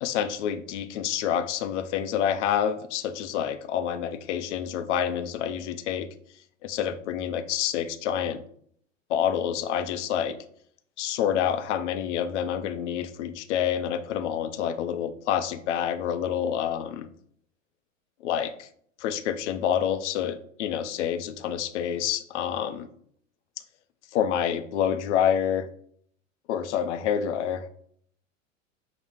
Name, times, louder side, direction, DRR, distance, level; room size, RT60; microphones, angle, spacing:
voice 1, 0.0-6.1 6.6-8.4 9.1-10.4 11.0-17.1 18.2-18.7 19.0-22.9 24.1-25.7 26.5-27.7, left 9 dB, 60° left, 10 dB, 0.6 m, -28 dB
5.7 x 2.1 x 3.4 m, 0.62 s
figure-of-eight pair, 90°, 39 cm